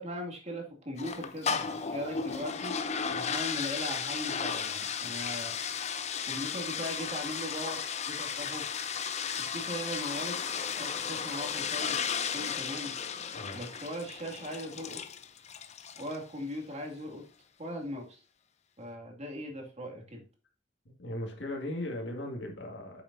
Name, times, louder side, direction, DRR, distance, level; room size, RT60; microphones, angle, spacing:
voice 1, 0.0-2.8 3.1-5.6 6.3-8.7 9.4-10.4 10.8-12.0 12.3-12.9 13.5-15.0 16.0-17.2 17.6-18.2 18.8-20.2, equal, 35° right, 1 dB, 2.3 m, -39 dB
sound 1, 1.0-16.2, left 6 dB, 35° left, 0.6 m, -35 dB
voice 2, 21.0-23.0, left 1 dB, 65° left, 1 dB, 2.1 m, -37 dB
9.0 x 7.0 x 2.7 m, 0.38 s
head